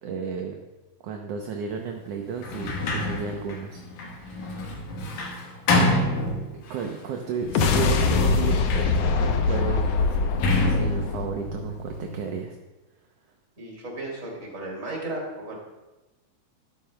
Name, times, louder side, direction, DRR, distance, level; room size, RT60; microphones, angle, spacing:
voice 1, 0.0-0.6 1.0-3.8 4.2-4.5 6.5-8.7 9.2-9.9 10.5-12.6, right 6 dB, 70° right, 2 dB, 1.7 m, -33 dB
Sliding door, 2.4-6.9 7.5-12.4, left 2 dB, 85° left, 2.9 m, -28 dB
sound 1, 7.4-11.9, left 4 dB, 65° left, 1.7 m, -23 dB
voice 2, 13.6-15.6, right 2 dB, 25° right, -2 dB, 3.0 m, -35 dB
14.0 x 12.0 x 2.3 m, 1.1 s
omnidirectional pair, 3.4 m